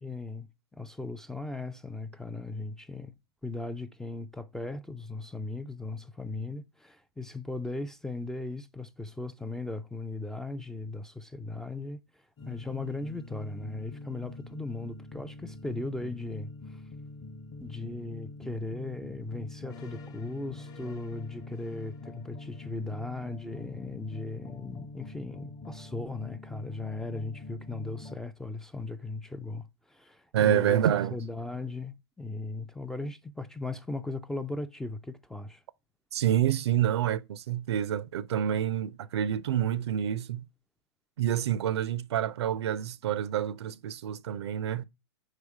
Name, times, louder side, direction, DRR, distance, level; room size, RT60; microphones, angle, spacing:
voice 1, 0.0-0.5 0.7-3.1 3.4-16.8 17.6-30.8 31.1-35.6, left 2 dB, 5° left, 0.3 m, -38 dB
sound 1, 12.4-28.2, left 2 dB, 30° left, 0.8 m, -45 dB
voice 2, 30.3-31.2 36.1-40.5 41.2-44.8, right 10 dB, 75° right, 0.5 m, -28 dB
4.9 x 4.8 x 4.7 m
hypercardioid pair, 125°, 14 cm